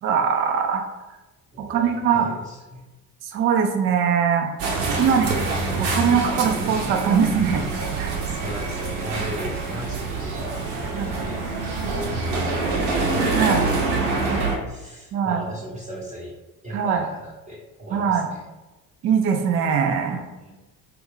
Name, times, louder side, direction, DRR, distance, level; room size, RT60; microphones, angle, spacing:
voice 1, 0.0-0.9 1.6-2.3 3.3-4.5 5.0-5.3 5.8-7.7 8.0-8.2 10.9-11.1 13.3-13.6 15.1-15.4 16.7-17.0 17.9-18.3 19.0-20.2, right 7 dB, 30° right, 4 dB, 0.4 m, -21 dB
voice 2, 1.5-2.9 4.9-5.4 8.2-11.5 11.8-13.0 13.3-16.3 16.6-18.4 20.4-20.5, equal, 15° right, -5 dB, 0.8 m, -36 dB
sound 1, 4.6-14.6, right 3 dB, 60° right, 0.7 m, -25 dB
2.4 x 2.3 x 3.5 m, 1.1 s
figure-of-eight pair, 55°, 45 cm